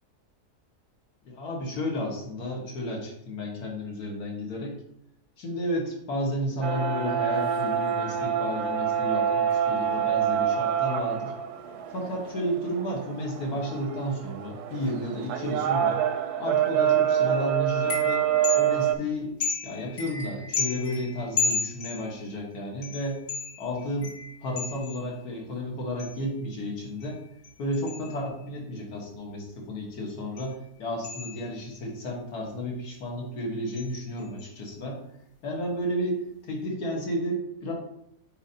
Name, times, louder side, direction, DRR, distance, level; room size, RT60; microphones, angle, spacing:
voice 1, 1.3-4.8 5.4-11.3 11.9-16.0 16.4-18.3 18.5-19.3 19.6-23.2 23.6-24.1 24.4-27.2 27.6-35.0 35.4-37.7, equal, 80° left, -1 dB, 1.9 m, -32 dB
sound 1, 6.6-19.0, right 9 dB, 85° right, 1.1 m, -26 dB
sound 2, 17.8-19.0 19.4-22.4 22.8-25.2 26.0-26.3 26.8-28.5 30.4-30.6 31.0-31.8 33.7-33.9 34.2-34.5, left 4 dB, 55° left, 1.6 m, -34 dB
7.9 x 4.3 x 2.8 m, 0.77 s
omnidirectional pair, 1.6 m